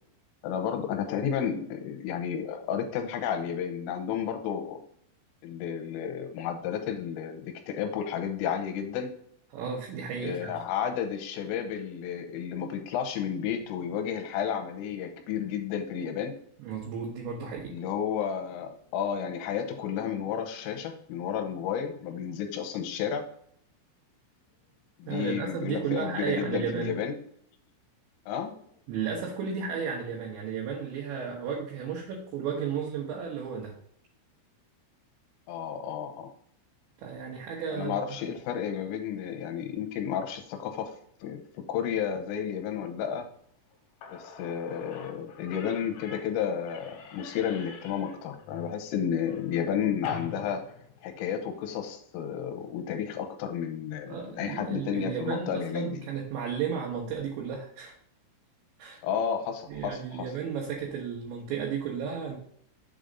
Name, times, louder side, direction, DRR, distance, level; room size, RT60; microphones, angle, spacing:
voice 1, 0.4-4.8 5.4-9.1 10.2-16.3 17.7-23.3 25.0-27.2 28.3-28.6 35.5-36.3 37.8-40.9 41.2-43.3 44.1-50.6 51.0-56.0 59.0-60.3, left 8 dB, 85° left, 5 dB, 3.4 m, -32 dB
voice 2, 9.5-10.6 16.6-17.7 25.1-27.0 28.9-33.7 37.0-38.0 54.1-58.0 58.8-59.0 59.7-62.4, right 6 dB, 75° right, -2 dB, 3.0 m, -33 dB
Slam / Squeak, 43.7-43.8 44.0-51.5, left 6 dB, 70° left, 3.2 m, -46 dB
7.4 x 3.9 x 5.1 m, 0.64 s
omnidirectional pair, 6.0 m